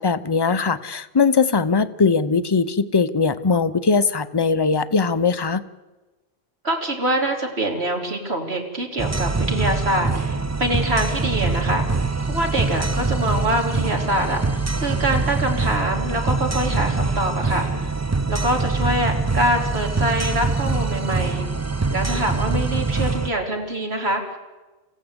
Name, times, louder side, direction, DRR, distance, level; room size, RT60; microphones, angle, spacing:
voice 1, 0.0-5.6, left 4 dB, 25° left, 13 dB, 0.7 m, -20 dB
voice 2, 6.6-17.9 18.3-21.4 21.9-24.4, right 1 dB, 80° right, 2 dB, 3.4 m, -25 dB
sound 1, 9.0-23.3, right 3 dB, 20° right, 0.6 m, -24 dB
26.5 x 15.5 x 8.0 m, 1.2 s
omnidirectional pair, 1.1 m